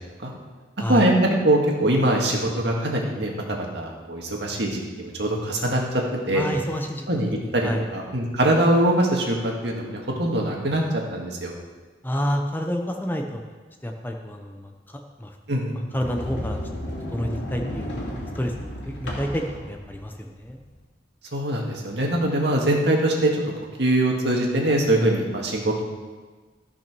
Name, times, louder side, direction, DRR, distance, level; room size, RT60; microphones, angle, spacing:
voice 1, 0.9-5.8 6.3-6.4 7.1-10.8 11.1-11.5 15.5-15.7 21.3-23.3 23.8-25.8, right 1 dB, 65° right, 0 dB, 1.9 m, -22 dB
voice 2, 6.3-7.9 12.0-13.4 13.8-15.3 15.9-16.6 16.9-18.0 18.4-20.6, equal, 10° left, 3 dB, 0.7 m, -29 dB
Sliding door, 15.9-20.8, left 1 dB, 80° left, 2.6 m, -33 dB
14.0 x 6.1 x 6.1 m, 1.4 s
head